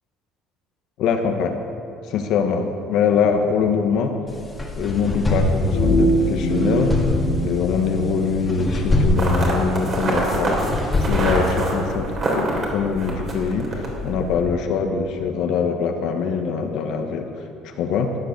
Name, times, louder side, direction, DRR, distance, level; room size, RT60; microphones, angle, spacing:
voice 1, 1.0-1.6 2.1-4.1 4.7-6.9 7.4-10.6 11.0-17.3 17.6-18.1, left 6 dB, 65° left, 4 dB, 1.3 m, -23 dB
sound 1, 4.3-11.6, left 2 dB, 15° left, 2.0 m, -24 dB
sound 2, 5.7-8.6, equal, 80° left, 4.3 m, -22 dB
sound 3, 9.2-14.5, right 2 dB, 35° right, 3.3 m, -26 dB
15.0 x 10.0 x 6.7 m, 2.5 s
cardioid pair, 135°, 0 cm